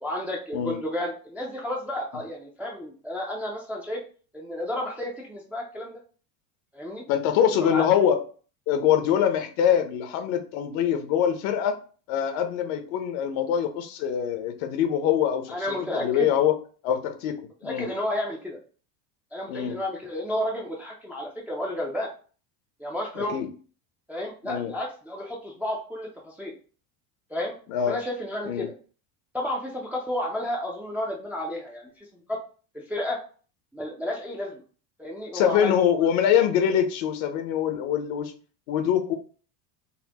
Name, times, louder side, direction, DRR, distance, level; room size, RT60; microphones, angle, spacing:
voice 1, 0.0-4.0 4.3-6.0 6.7-7.0 7.6-7.9 15.5-16.3 17.6-18.6 19.3-22.1 22.8-23.4 24.1-26.5 27.3-27.6 27.9-28.7 29.3-32.4 32.7-33.2 33.7-34.6 35.0-35.8, left 1 dB, 5° right, -2 dB, 0.3 m, -32 dB
voice 2, 7.1-8.2 8.7-11.8 12.1-15.6 15.9-16.5 16.8-17.9 19.5-19.8 23.2-23.5 24.4-24.7 27.7-28.0 28.4-28.7 35.3-38.3 38.7-39.1, left 9 dB, 70° left, 7 dB, 0.8 m, -24 dB
4.2 x 2.1 x 2.8 m, 0.40 s
supercardioid pair, 120°, 43 cm